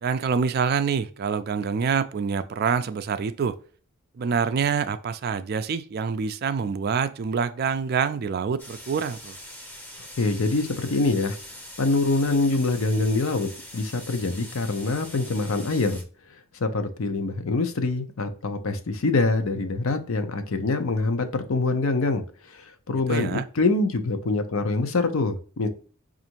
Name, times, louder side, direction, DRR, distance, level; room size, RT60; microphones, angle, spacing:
voice 1, 0.0-3.6 4.2-9.4 23.1-23.4, right 6 dB, 45° right, 0.3 m, -26 dB
sound 1, 8.6-16.0, left 1 dB, 10° left, 0.6 m, -43 dB
voice 2, 10.2-11.4 11.8-16.0 16.6-25.7, left 3 dB, 75° left, 0.6 m, -25 dB
5.2 x 2.5 x 2.8 m
head